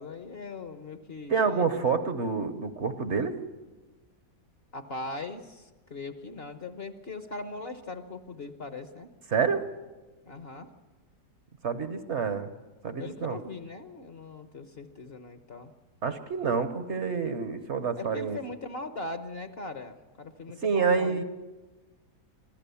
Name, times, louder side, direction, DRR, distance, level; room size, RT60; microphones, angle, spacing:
voice 1, 0.0-1.9 4.7-9.1 10.2-10.7 13.0-15.7 18.0-21.2, left 3 dB, 45° left, 8 dB, 1.1 m, -40 dB
voice 2, 1.3-3.4 9.3-9.7 11.6-12.5 12.8-13.4 16.0-18.4 20.6-21.2, right 5 dB, 50° right, 10 dB, 1.2 m, -28 dB
25.5 x 15.0 x 7.0 m, 1.2 s
omnidirectional pair, 1.7 m